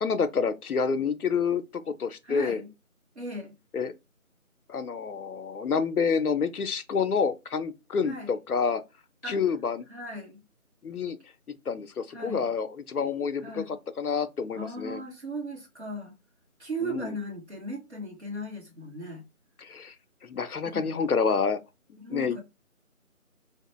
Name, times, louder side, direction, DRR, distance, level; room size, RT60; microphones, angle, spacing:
voice 1, 0.0-2.6 3.7-3.9 4.7-8.8 9.2-9.9 10.8-11.2 11.7-15.0 16.8-17.2 19.6-19.9 20.2-21.6 22.1-22.4, left 5 dB, 85° left, 0.6 m, -28 dB
voice 2, 2.2-2.7 3.1-3.6 8.0-8.3 9.2-9.4 9.9-10.4 12.1-12.5 13.4-13.8 14.5-16.2 16.6-19.2 20.6-21.0 22.0-22.4, right 1 dB, 50° right, 1.1 m, -37 dB
2.9 x 2.1 x 2.9 m
figure-of-eight pair, 170°, 43 cm